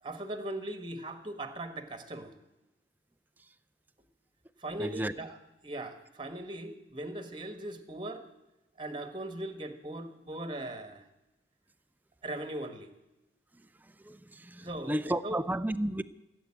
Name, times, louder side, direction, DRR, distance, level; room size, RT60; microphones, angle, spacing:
voice 1, 0.0-2.3 4.6-5.4 5.6-8.2 8.8-11.0 12.2-12.9 14.6-15.4, right 1 dB, 25° right, 9 dB, 1.5 m, -39 dB
voice 2, 4.8-5.1 14.1-14.2 14.5-16.0, right 1 dB, 10° right, 12 dB, 0.5 m, -32 dB
17.5 x 8.2 x 9.8 m, 0.97 s
head